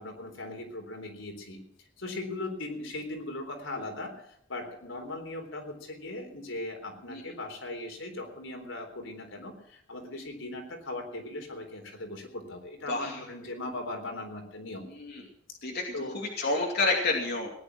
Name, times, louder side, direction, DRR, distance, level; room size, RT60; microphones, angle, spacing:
voice 1, 0.0-1.6 2.0-4.2 4.5-14.8 15.9-16.2, left 2 dB, 75° left, 3 dB, 3.9 m, -39 dB
voice 2, 12.9-13.2 14.9-15.2 15.6-17.5, left 3 dB, 55° left, -1 dB, 2.6 m, -30 dB
19.0 x 10.5 x 6.1 m, 0.70 s
head